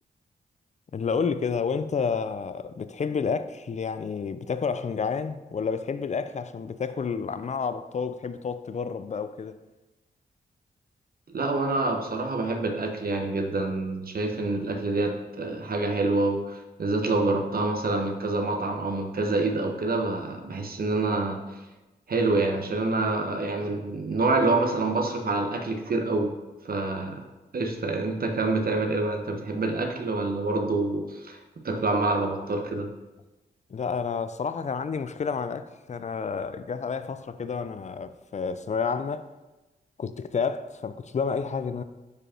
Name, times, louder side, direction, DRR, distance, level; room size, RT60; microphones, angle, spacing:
voice 1, 0.9-9.6 33.7-39.3 40.0-41.8, left 5 dB, 40° left, 0.4 m, -30 dB
voice 2, 11.3-21.6 22.1-26.3 26.6-27.2 27.5-31.4 31.6-32.9, right 2 dB, 55° right, 1.0 m, -27 dB
5.0 x 4.8 x 4.4 m
cardioid pair, 55°, 18 cm